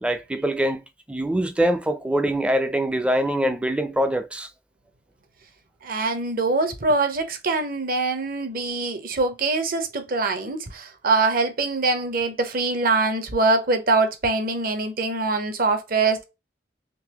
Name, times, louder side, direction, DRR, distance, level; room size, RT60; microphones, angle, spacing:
voice 1, 0.0-4.5, right 1 dB, 5° right, 0.4 m, -24 dB
voice 2, 5.8-16.2, right 3 dB, 55° right, 0.7 m, -23 dB
3.8 x 2.6 x 2.9 m
head